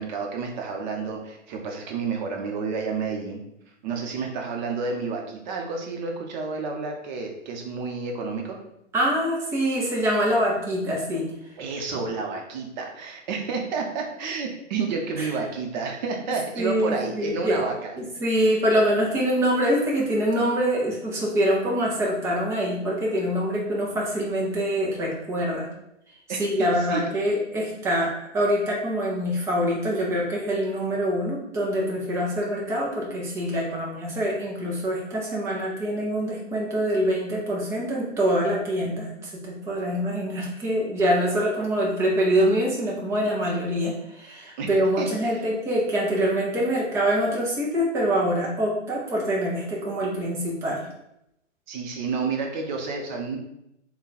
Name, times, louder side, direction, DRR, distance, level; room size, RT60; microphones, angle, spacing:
voice 1, 0.0-3.4 3.8-8.6 11.6-18.0 26.3-27.1 44.6-44.7 45.0-45.4 51.7-53.4, right 4 dB, 35° right, 2 dB, 0.8 m, -30 dB
voice 2, 8.9-11.3 15.2-15.3 16.6-17.6 18.0-25.7 26.3-50.9, equal, 10° right, -3 dB, 0.4 m, -25 dB
3.6 x 2.3 x 4.1 m, 0.81 s
hypercardioid pair, 125°, 38 cm